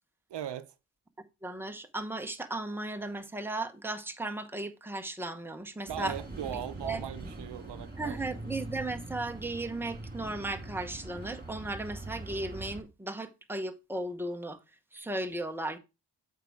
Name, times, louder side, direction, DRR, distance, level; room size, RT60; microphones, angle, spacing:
voice 1, 0.3-0.7 5.9-8.2, right 10 dB, 70° right, 0.8 m, -39 dB
voice 2, 1.4-6.1 6.8-7.0 8.0-14.6 14.9-15.8, right 2 dB, 5° right, 1.0 m, -36 dB
sound 1, 5.9-12.8, right 2 dB, 20° right, 2.7 m, -42 dB
8.2 x 4.7 x 4.8 m
cardioid pair, 85°, 43 cm